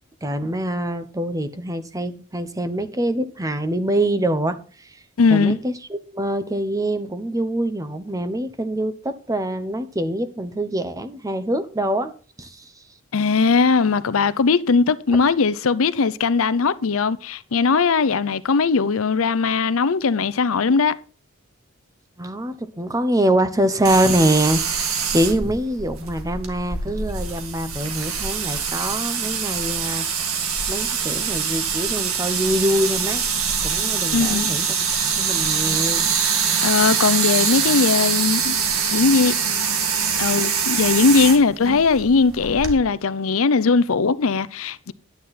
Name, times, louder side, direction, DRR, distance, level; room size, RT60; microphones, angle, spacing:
voice 1, 0.2-4.6 4.8-5.0 5.3-12.1 12.4-12.7 22.2-30.1 30.7-33.2 33.6-34.7 35.0-36.1, right 1 dB, 15° right, 0.9 m, -24 dB
voice 2, 5.2-5.6 13.1-20.9 34.1-34.5 36.6-38.6 38.9-39.4 40.2-44.9, left 4 dB, 75° left, 0.6 m, -19 dB
sound 1, 23.8-42.8, right 6 dB, 90° right, 2.1 m, -24 dB
10.5 x 9.4 x 4.1 m
head